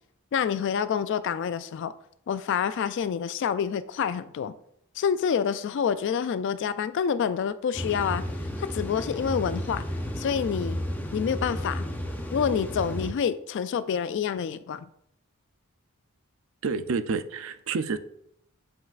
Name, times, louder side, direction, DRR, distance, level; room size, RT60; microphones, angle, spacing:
voice 1, 0.3-1.9 2.3-4.5 5.0-8.2 8.6-9.8 10.2-10.8 11.1-11.8 12.3-14.8, left 7 dB, 55° left, 0.3 m, -27 dB
sound 1, 7.7-13.1, equal, 10° left, 0.6 m, -33 dB
voice 2, 16.6-18.0, right 4 dB, 65° right, 0.4 m, -29 dB
7.8 x 5.3 x 2.5 m
head